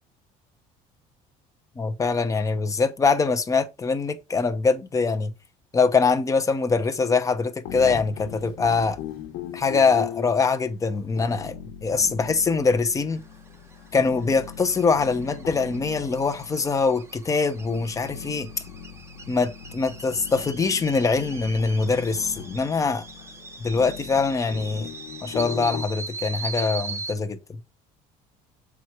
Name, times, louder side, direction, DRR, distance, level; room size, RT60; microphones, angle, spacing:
voice 1, 1.8-5.3 5.7-9.0 9.5-11.5 11.8-13.2 13.9-18.5 19.3-23.0 23.6-24.9 25.2-27.6, left 4 dB, 20° left, 0.9 m, -23 dB
sound 1, 7.6-25.8, left 9 dB, 75° left, 1.1 m, -39 dB
sound 2, 13.1-27.1, right 4 dB, 15° right, 1.0 m, -40 dB
7.1 x 4.5 x 4.8 m
cardioid pair, 130°, 16 cm